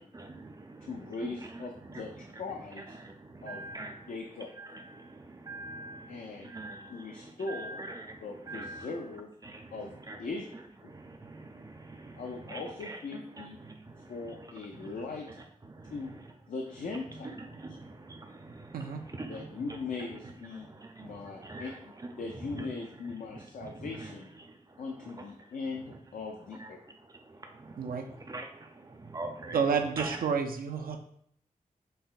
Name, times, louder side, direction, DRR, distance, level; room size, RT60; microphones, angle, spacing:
voice 1, 0.2-0.9 1.2-2.1 3.0-4.1 4.6-8.9 9.4-9.8 10.1-10.2 10.9-14.4 14.7-15.2 15.7-16.1 17.2-19.5 20.5-21.7 22.6-22.7 23.3-24.1 24.4-25.2 26.6-26.7 27.3-29.6 30.0-30.2, right 2 dB, 25° right, 4 dB, 0.5 m, -44 dB
voice 2, 0.9-2.1 2.4-3.0 3.4-3.6 4.1-4.5 6.1-6.5 6.9-7.8 8.2-9.3 9.7-10.5 10.8-10.9 12.1-13.6 14.1-15.3 15.9-16.1 16.5-17.3 19.3-20.7 21.0-24.3 24.8-26.8, left 4 dB, 70° left, 2 dB, 0.4 m, -40 dB
voice 3, 29.5-31.0, right 6 dB, 90° right, 5 dB, 0.4 m, -30 dB
5.4 x 2.1 x 2.4 m, 0.66 s
wide cardioid pair, 95°, 15 cm